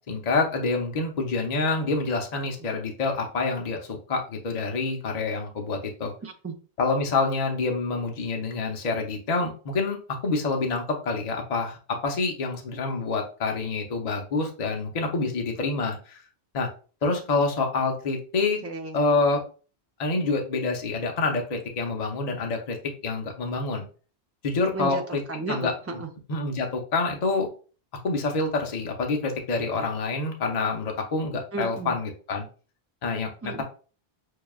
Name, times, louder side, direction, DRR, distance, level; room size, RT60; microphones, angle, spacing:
voice 1, 0.1-6.1 6.8-10.0 10.2-16.2 16.5-16.7 17.0-18.6 18.9-19.4 20.0-22.8 23.0-23.8 24.4-25.0 25.5-25.7 26.3-27.5 28.0-32.5 33.0-33.5, left 3 dB, 45° left, 2 dB, 0.8 m, -27 dB
voice 2, 6.2-6.5 18.6-19.1 24.7-26.1 31.5-32.0 33.4-33.6, right 3 dB, 15° right, 3 dB, 0.5 m, -33 dB
6.5 x 2.3 x 2.3 m, 0.37 s
omnidirectional pair, 1.1 m